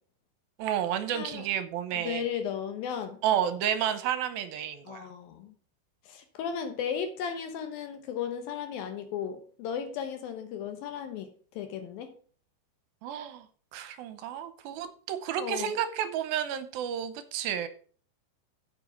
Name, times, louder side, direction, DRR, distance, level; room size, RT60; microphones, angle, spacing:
voice 1, 0.6-2.2 3.2-5.1 13.0-13.5 13.7-17.7, right 10 dB, 80° right, 11 dB, 2.4 m, -31 dB
voice 2, 1.1-1.4 1.9-3.2 4.9-5.5 6.1-12.1 15.4-15.7, left 7 dB, 75° left, 7 dB, 2.6 m, -35 dB
8.0 x 7.6 x 5.2 m, 0.43 s
omnidirectional pair, 4.5 m